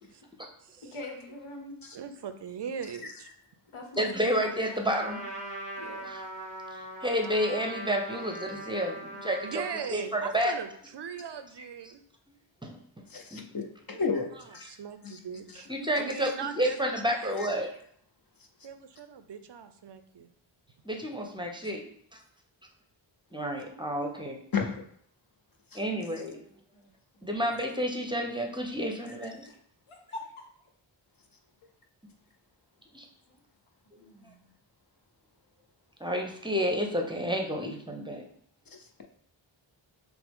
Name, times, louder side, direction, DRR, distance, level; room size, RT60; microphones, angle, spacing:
voice 1, 0.8-1.8 3.7-4.9 5.8-6.1 26.5-27.4 29.5-29.6 29.9-30.5 33.3-33.4 34.0-34.4, left 2 dB, 80° left, 2 dB, 1.0 m, -45 dB
voice 2, 1.9-3.3 9.4-12.0 13.9-15.7 16.0-16.8 17.1-17.5 18.6-20.3, right 7 dB, 60° right, 9 dB, 0.5 m, -40 dB
voice 3, 4.0-5.2 6.0-6.2 6.7-9.5 9.9-10.6 12.6-12.8 13.3-13.4 15.7-17.7 20.8-21.8 23.3-24.4 25.7-26.4 27.2-29.5 32.9-33.1 36.0-38.2, equal, 10° right, 2 dB, 0.7 m, -30 dB
Trumpet, 5.0-9.9, right 1 dB, 15° left, 1.0 m, -41 dB
voice 4, 13.1-14.7 15.0-15.2 24.5-24.8 25.7-25.8, left 5 dB, 45° left, 3 dB, 0.7 m, -32 dB
5.8 x 2.0 x 3.5 m, 0.64 s
cardioid pair, 45°, 49 cm